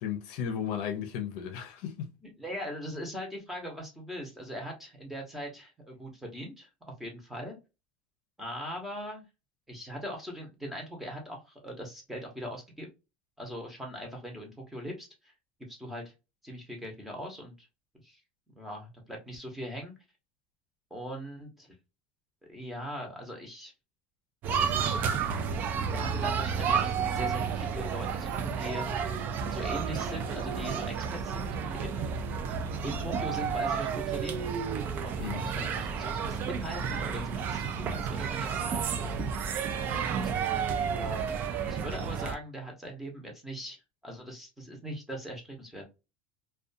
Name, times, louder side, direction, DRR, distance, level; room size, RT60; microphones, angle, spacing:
voice 1, 0.0-2.1 35.2-35.5, left 8 dB, 65° left, 0.6 m, -34 dB
voice 2, 2.4-6.7 7.0-7.5 8.4-9.2 9.7-12.9 13.4-15.3 15.7-16.1 16.4-17.5 18.0-18.2 18.6-19.9 20.9-21.7 22.5-23.7 24.5-25.0 25.9-29.0 29.4-32.1 32.8-34.5 35.0-39.2 40.1-40.6 40.9-41.3 41.7-45.9, equal, 5° right, 0.8 m, -41 dB
sound 1, 24.4-42.3, right 6 dB, 35° right, 0.4 m, -31 dB
2.4 x 2.2 x 2.5 m
cardioid pair, 155°, 5 cm